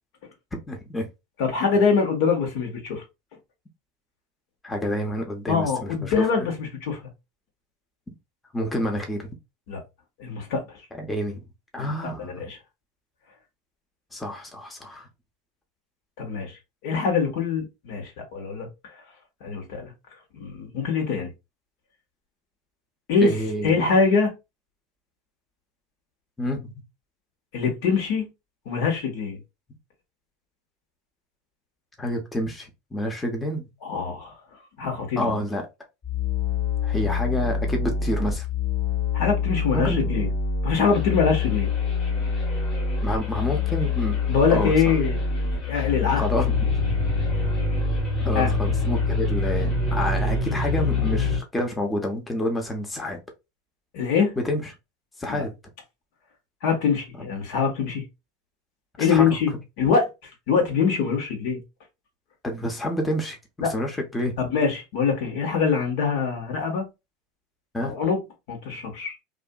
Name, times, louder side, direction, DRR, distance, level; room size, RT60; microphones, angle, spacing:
voice 1, 0.7-1.1 4.6-6.5 8.5-9.3 10.9-11.4 11.7-12.4 14.1-15.1 23.2-23.8 26.4-26.7 32.0-33.6 35.2-35.7 36.8-38.5 39.7-40.2 43.0-44.2 44.5-44.7 46.1-46.7 48.2-53.2 54.4-54.7 55.2-55.5 59.0-59.4 62.4-64.4 67.7-68.0, left 1 dB, 15° left, 0.7 m, -28 dB
voice 2, 1.4-3.0 5.5-7.0 9.7-9.8 10.2-10.6 11.8-12.6 16.2-16.6 16.8-18.7 19.4-19.9 20.3-21.3 23.1-23.3 23.6-24.3 27.5-28.3 28.7-29.4 33.8-34.3 34.8-35.2 39.1-40.3 40.6-41.7 44.3-45.2 45.7-46.2 48.3-48.5 53.9-54.4 55.3-55.4 56.6-58.1 59.0-59.5 59.8-60.1 60.5-61.6 63.6-63.7 64.4-66.8 67.8-68.2 68.5-69.1, left 5 dB, 65° left, 1.1 m, -23 dB
sound 1, 36.0-51.4, left 4 dB, 45° left, 1.0 m, -25 dB
2.6 x 2.4 x 2.2 m
hypercardioid pair, 90°, 0 cm